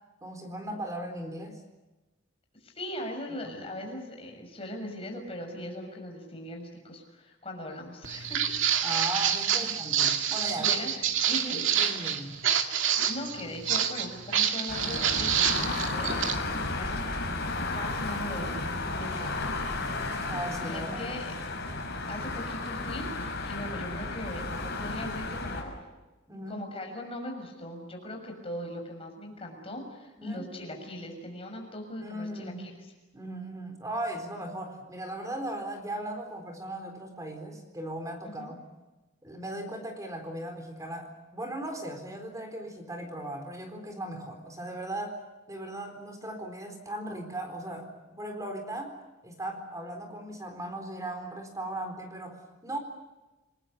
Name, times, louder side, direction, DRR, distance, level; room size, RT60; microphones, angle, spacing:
voice 1, 0.2-1.6 3.4-3.5 8.8-10.8 11.5-12.4 20.3-21.1 26.3-26.6 30.2-30.5 32.0-32.6 33.1-38.6 39.2-45.2 45.5-47.9 48.1-48.9 49.2-52.8, right 1 dB, 15° right, 5 dB, 4.1 m, -37 dB
voice 2, 2.6-8.4 9.6-9.8 10.4-11.0 11.3-11.6 12.8-17.4 17.7-18.7 18.9-19.6 20.6-21.3 22.1-25.9 26.5-32.8 38.2-38.5, left 1 dB, 25° left, 3 dB, 6.4 m, -40 dB
Walk footsteps, 8.0-16.4, right 8 dB, 65° right, 2.3 m, -27 dB
sound 1, 14.7-25.6, left 2 dB, 50° left, 6.2 m, -33 dB
29.0 x 20.5 x 8.5 m, 1.1 s
head